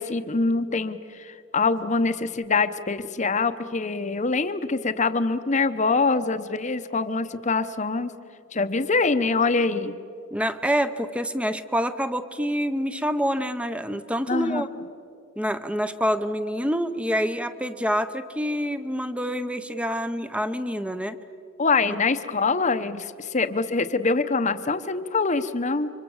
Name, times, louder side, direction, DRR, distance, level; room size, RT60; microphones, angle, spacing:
voice 1, 0.0-8.1 8.5-10.0 14.3-14.6 21.6-25.9, left 4 dB, 35° left, 11 dB, 0.9 m, -24 dB
voice 2, 10.3-14.7 15.4-21.2, equal, 5° right, 11 dB, 0.8 m, -27 dB
29.5 x 25.0 x 7.2 m, 2.6 s
head